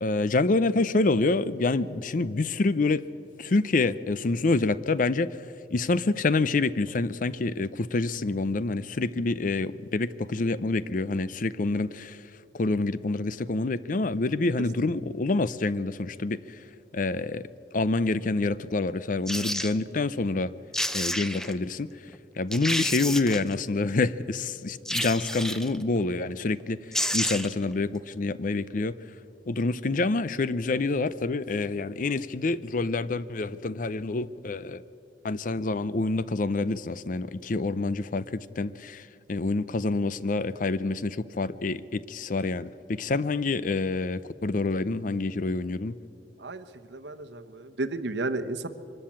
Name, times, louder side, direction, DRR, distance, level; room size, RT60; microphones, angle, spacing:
voice 1, 0.0-3.0 3.4-5.4 5.7-12.2 12.5-16.6 16.9-17.5 17.7-20.5 20.9-21.9 22.4-29.0 29.5-34.8 35.2-46.0, left 3 dB, 50° left, 17 dB, 0.5 m, -27 dB
sound 1, 19.3-19.7 20.5-20.6 20.7-21.5 22.1-22.2 22.5-23.5 24.9-25.8 26.6-26.7 26.9-27.6 28.0-28.1, equal, 5° left, 0.6 m, -30 dB
voice 2, 46.9-48.7, right 2 dB, 80° right, 10 dB, 1.0 m, -32 dB
23.5 x 13.5 x 8.7 m, 2.7 s
head